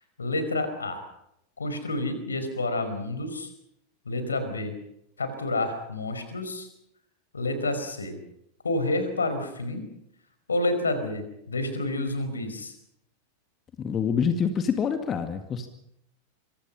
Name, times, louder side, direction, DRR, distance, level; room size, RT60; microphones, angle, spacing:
voice 1, 0.2-1.0 1.6-3.5 4.0-4.7 5.2-6.7 7.3-8.2 8.6-9.8 10.5-12.7, left 2 dB, 75° left, 9 dB, 5.0 m, -29 dB
voice 2, 13.8-15.7, left 7 dB, 25° left, 7 dB, 2.1 m, -26 dB
26.5 x 24.5 x 5.6 m, 0.78 s
figure-of-eight pair, 90°, 0 cm